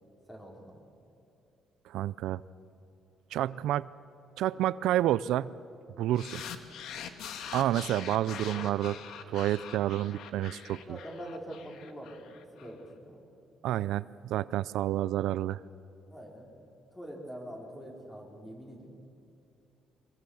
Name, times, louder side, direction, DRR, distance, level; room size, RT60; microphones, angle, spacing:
voice 1, 0.3-0.8 8.4-8.6 10.7-13.2 16.1-16.5 16.9-18.9, equal, 10° left, 0 dB, 4.3 m, -44 dB
voice 2, 1.9-2.4 3.3-3.9 4.4-5.5 6.0-6.4 7.5-8.9 9.3-10.8 13.6-15.6, right 13 dB, 85° right, 17 dB, 0.4 m, -29 dB
sound 1, 6.2-12.7, left 8 dB, 75° left, 1.6 m, -43 dB
23.5 x 21.5 x 7.2 m, 2.7 s
cardioid pair, 145°, 0 cm